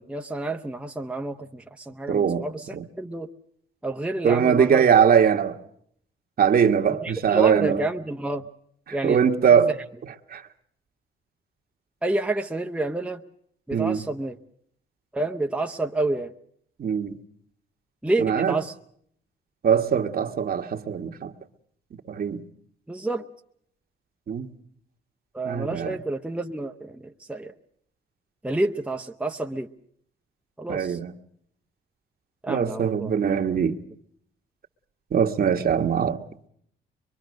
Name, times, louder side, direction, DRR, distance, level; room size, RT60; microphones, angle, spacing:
voice 1, 0.0-3.3 3.8-4.8 6.9-8.4 8.9-9.2 9.5-9.7 12.0-13.2 13.7-14.4 15.1-16.3 18.0-18.7 22.9-23.3 25.3-27.5 28.4-29.7 30.6-31.0 32.4-33.1, right 2 dB, 5° right, 0.9 m, -29 dB
voice 2, 2.1-2.4 2.7-2.8 4.2-5.6 6.4-7.8 8.9-9.7 10.3-10.4 13.7-14.0 16.8-17.2 18.2-18.6 19.6-21.3 22.1-22.4 24.3-24.5 25.4-26.0 30.7-31.1 32.5-33.8 35.1-36.2, right 7 dB, 50° right, 1.5 m, -21 dB
24.0 x 23.5 x 6.5 m
cardioid pair, 90°, 20 cm